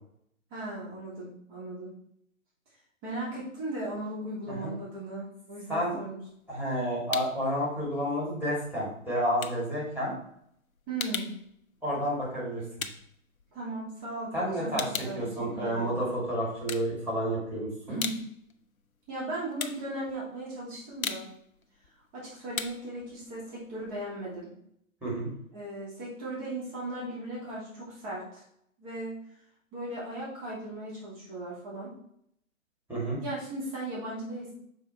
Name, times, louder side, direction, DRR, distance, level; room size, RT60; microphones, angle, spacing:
voice 1, 0.5-1.9 3.0-6.2 10.9-11.3 13.5-16.0 17.9-18.2 19.1-21.3 22.1-24.5 25.5-28.4 28.8-29.2 29.7-31.9 33.2-34.5, right 1 dB, 25° right, -7 dB, 2.9 m, -37 dB
sound 1, 6.2-7.5 7.8-14.1 14.4-16.1 16.5-17.4 17.7-24.4, left 6 dB, 75° left, 0.8 m, -39 dB
voice 2, 6.5-10.2 11.8-12.6 14.3-14.8 15.1-18.0 25.0-25.3 32.9-33.2, equal, 5° right, -8 dB, 3.0 m, -30 dB
6.4 x 4.7 x 4.5 m, 0.70 s
figure-of-eight pair, 135°, 42 cm